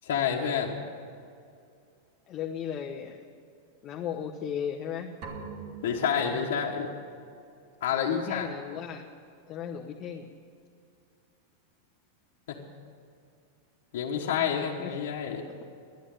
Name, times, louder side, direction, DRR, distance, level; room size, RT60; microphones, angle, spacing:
voice 1, 0.0-0.8 5.8-6.9 7.8-8.5 12.5-12.6 13.9-15.4, left 7 dB, 70° left, -2 dB, 1.3 m, -28 dB
voice 2, 2.3-3.2 3.8-5.1 7.9-9.0 9.5-10.3 14.8-14.9, left 8 dB, 35° left, 0 dB, 0.9 m, -36 dB
sound 1, 5.2-7.0, right 5 dB, 50° right, 1.9 m, -43 dB
11.5 x 9.5 x 9.0 m, 2.5 s
supercardioid pair, 130°, 0 cm